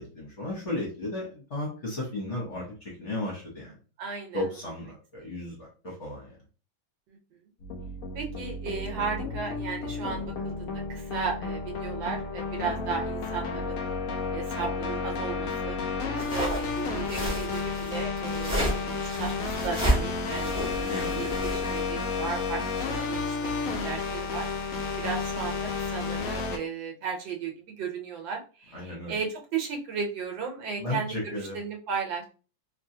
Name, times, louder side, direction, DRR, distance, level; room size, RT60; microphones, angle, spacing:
voice 1, 0.0-3.7 4.3-6.3 20.8-21.1 28.7-29.1 30.8-31.6, left 1 dB, 50° left, -3 dB, 1.0 m, -34 dB
voice 2, 4.0-4.5 5.2-5.4 7.1-7.4 8.1-13.8 14.3-15.8 16.1-23.5 23.8-32.3, right 6 dB, 75° right, 2 dB, 1.4 m, -35 dB
sound 1, 7.6-26.6, left 4 dB, 80° left, 0.7 m, -32 dB
sound 2, 16.2-21.8, right 1 dB, 5° right, 0.5 m, -31 dB
3.0 x 2.7 x 2.7 m, 0.36 s
omnidirectional pair, 2.1 m